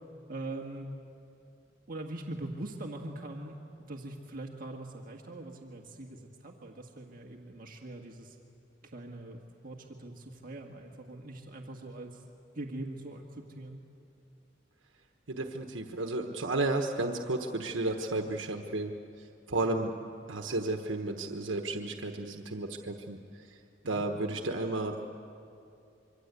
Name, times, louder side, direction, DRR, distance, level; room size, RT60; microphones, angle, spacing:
voice 1, 0.3-0.9 1.9-8.4 8.9-12.2 12.6-13.8 19.6-19.9 23.8-24.1, right 2 dB, 50° right, 1 dB, 1.8 m, -42 dB
voice 2, 15.3-18.9 19.2-19.9 20.3-23.6 23.8-25.0, right 2 dB, 90° right, 4 dB, 1.3 m, -33 dB
26.0 x 24.0 x 8.3 m, 2.7 s
head